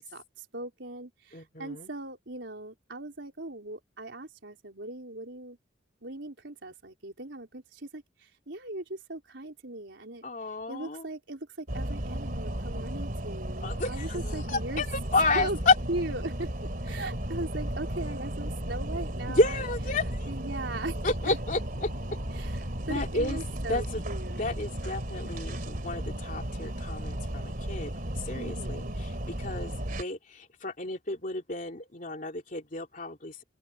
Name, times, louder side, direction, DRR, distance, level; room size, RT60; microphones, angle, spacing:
voice 1, 0.0-5.6 6.0-10.2 10.7-14.8 15.3-15.6 15.9-16.5 16.8-19.5 20.3-21.0 21.3-21.4 22.3-24.5 28.3-29.0, right 2 dB, 90° right, 4.1 m, -39 dB
voice 2, 1.3-1.9 10.2-11.0 13.6-15.7 19.3-20.3 21.0-21.9 22.9-24.0 24.4-33.4, left 3 dB, 50° left, 3.3 m, -31 dB
sound 1, 11.7-30.0, right 1 dB, 55° right, 3.1 m, -34 dB
open air
head